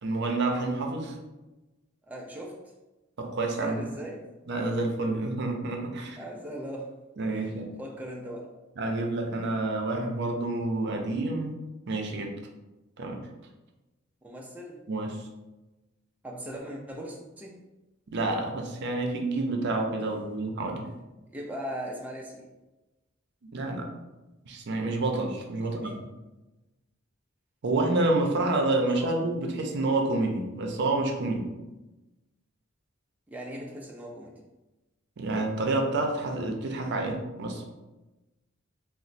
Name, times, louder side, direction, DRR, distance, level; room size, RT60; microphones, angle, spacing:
voice 1, 0.0-1.2 3.2-3.9 4.5-6.2 7.2-7.7 8.8-11.6 11.9-12.3 13.0-13.2 14.9-15.2 18.1-20.9 23.4-23.9 24.5-26.0 27.6-31.5 35.2-37.6, right 2 dB, 60° right, 2 dB, 0.5 m, -28 dB
voice 2, 2.0-2.6 3.6-4.3 6.2-6.9 7.3-8.5 14.2-14.8 16.2-17.6 20.0-20.1 21.3-22.5 25.6-26.0 29.0-29.2 33.3-34.4, right 1 dB, 10° right, -2 dB, 0.3 m, -39 dB
3.0 x 2.0 x 4.0 m, 1.1 s
head